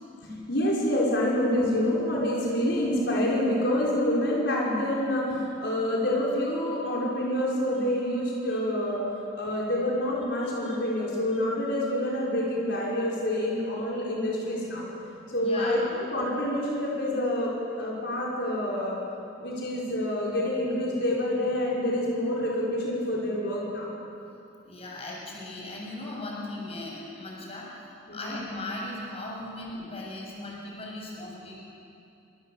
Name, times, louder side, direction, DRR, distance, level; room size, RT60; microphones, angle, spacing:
voice 1, 0.2-9.0 9.3-14.8 15.3-15.8 16.1-17.5 17.8-19.0 19.4-23.9 28.1-28.3, left 1 dB, 60° left, -4 dB, 5.7 m, -27 dB
voice 2, 10.4-10.8 15.4-15.9 24.6-31.6, left 2 dB, 35° left, -2 dB, 7.0 m, -38 dB
27.5 x 26.0 x 8.2 m, 2.7 s
head